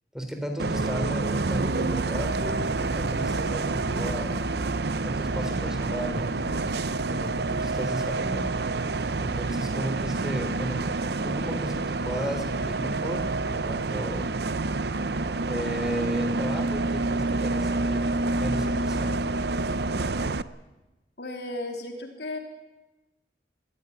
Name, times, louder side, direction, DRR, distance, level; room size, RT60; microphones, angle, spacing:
voice 1, 0.1-4.4 5.0-6.5 7.0-8.6 9.1-10.8 11.2-14.3 15.5-18.1 18.3-19.2, equal, 5° right, 5 dB, 3.7 m, -34 dB
Bus, 0.6-20.4, right 3 dB, 65° right, 0.7 m, -28 dB
voice 2, 21.2-22.4, left 2 dB, 70° left, 3 dB, 3.6 m, -34 dB
22.5 x 15.0 x 9.7 m, 1.1 s
head